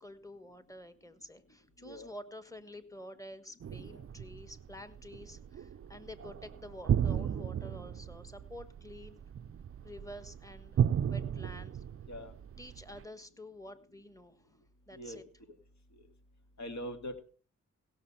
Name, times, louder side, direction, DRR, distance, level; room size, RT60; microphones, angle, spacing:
voice 1, 0.0-9.2 9.8-10.8 11.1-11.8 12.6-14.5 14.9-15.2, left 1 dB, 10° left, 11 dB, 1.4 m, -49 dB
sound 1, 3.6-13.0, right 9 dB, 45° right, 0.4 m, -35 dB
voice 2, 16.6-17.2, equal, 60° left, 7 dB, 2.0 m, -42 dB
16.5 x 6.5 x 5.6 m, 0.40 s
cardioid pair, 60°, 31 cm